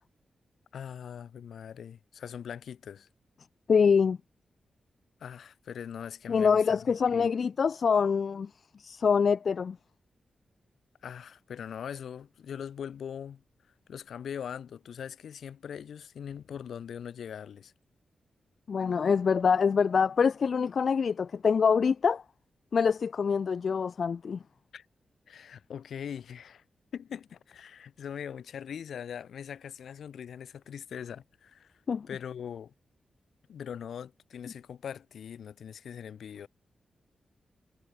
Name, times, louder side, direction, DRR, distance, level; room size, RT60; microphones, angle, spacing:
voice 1, 0.7-3.1 5.2-7.3 11.0-13.4 13.9-17.7 24.7-24.8 25.3-26.6 26.9-31.7 32.1-32.7 33.5-36.5, left 8 dB, 85° left, 5.0 m, -41 dB
voice 2, 3.7-4.2 6.3-8.5 8.8-9.8 18.7-22.2 22.7-24.4 31.9-32.1, left 6 dB, 65° left, 0.4 m, -25 dB
cardioid pair, 75°, 0 cm